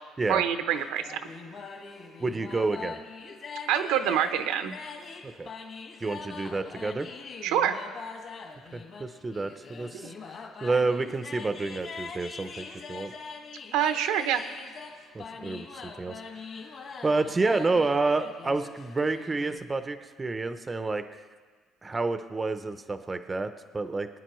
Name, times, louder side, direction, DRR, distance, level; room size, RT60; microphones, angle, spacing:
voice 1, 0.3-1.2 3.7-4.8 7.4-7.7 10.0-10.1 13.7-14.4, right 9 dB, 90° right, 8 dB, 0.8 m, -26 dB
sound 1, 0.7-19.6, left 5 dB, 45° left, 1.7 m, -43 dB
voice 2, 2.2-3.0 5.2-5.5 6.0-7.1 8.7-10.1 10.6-13.1 15.1-16.2 17.0-21.2 21.8-24.1, right 3 dB, 15° right, 9 dB, 0.5 m, -29 dB
23.0 x 9.6 x 3.1 m, 1.5 s
cardioid pair, 140°, 0 cm